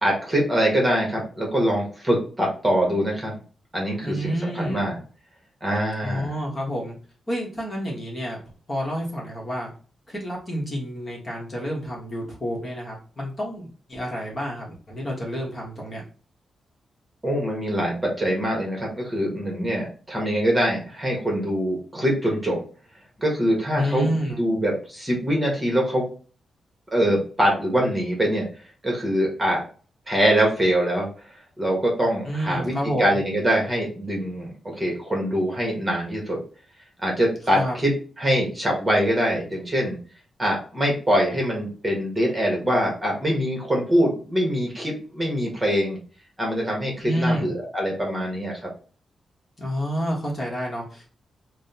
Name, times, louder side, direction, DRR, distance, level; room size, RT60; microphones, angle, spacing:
voice 1, 0.0-3.3 3.7-4.9 5.6-6.3 17.2-22.6 23.2-26.1 26.9-28.5 28.8-29.6 30.1-32.7 33.0-36.4 37.0-40.0 40.4-46.0 46.4-48.7, equal, 15° right, -1 dB, 1.3 m, -24 dB
voice 2, 4.0-4.9 6.0-7.0 7.3-8.4 8.7-9.7 10.1-16.0 23.7-24.4 32.2-33.2 37.5-37.7 47.0-47.5 49.6-51.1, equal, 25° left, -3 dB, 1.4 m, -29 dB
6.0 x 2.3 x 2.8 m, 0.40 s
wide cardioid pair, 145°, 0 cm